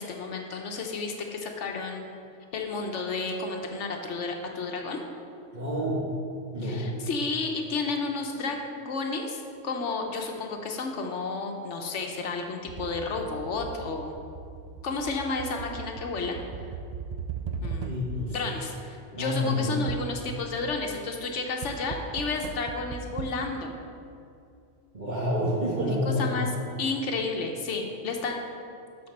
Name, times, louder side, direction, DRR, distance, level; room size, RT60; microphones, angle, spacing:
voice 1, 0.0-2.1 2.5-5.0 6.6-14.1 14.8-16.4 17.6-17.9 18.3-23.7 26.2-26.5 26.8-28.4, left 3 dB, 85° left, 2 dB, 1.1 m, -32 dB
voice 2, 5.5-6.1 6.5-6.9 17.8-18.5 19.2-19.8 24.9-26.3, left 1 dB, 40° right, -6 dB, 1.4 m, -28 dB
sound 1, 12.7-18.3 19.9-20.7 21.6-23.3, right 5 dB, 65° right, 0.4 m, -38 dB
12.5 x 4.3 x 5.3 m, 2.5 s
omnidirectional pair, 1.2 m